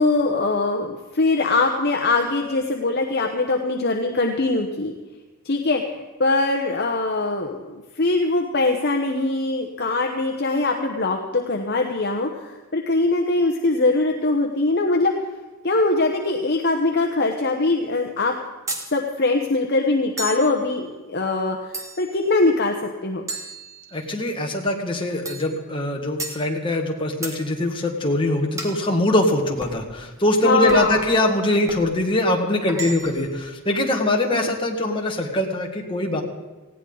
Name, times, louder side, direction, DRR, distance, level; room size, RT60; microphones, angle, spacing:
voice 1, 0.0-4.9 5.4-15.1 15.6-18.3 18.9-22.7 23.0-23.3 30.4-31.0 34.3-34.5, left 2 dB, 50° left, 3 dB, 1.1 m, -22 dB
sound 1, 18.7-18.9 20.2-20.5 21.7-22.2 23.3-24.2 25.3-25.5 26.2-26.4 27.2-27.4 28.6-28.8 29.6-29.8 30.7-31.0 31.7-31.9 32.7-33.3, right 2 dB, 15° right, 1.6 m, -33 dB
voice 2, 23.9-36.2, left 1 dB, 25° left, 1 dB, 1.9 m, -22 dB
19.0 x 16.0 x 4.0 m, 1.2 s
head